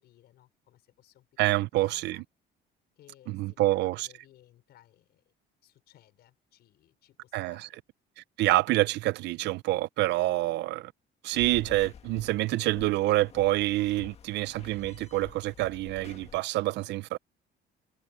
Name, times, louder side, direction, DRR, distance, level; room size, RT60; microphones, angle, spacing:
voice 1, 0.0-2.2 3.0-5.3 5.6-7.8, left 13 dB, 60° left, 5.5 m, -60 dB
voice 2, 1.4-2.2 3.3-4.1 7.3-7.7 8.4-10.9 11.2-17.2, right 17 dB, 65° right, 0.5 m, -27 dB
sound 1, 11.3-16.4, left 7 dB, 35° left, 1.7 m, -49 dB
cardioid pair, 175°, 19 cm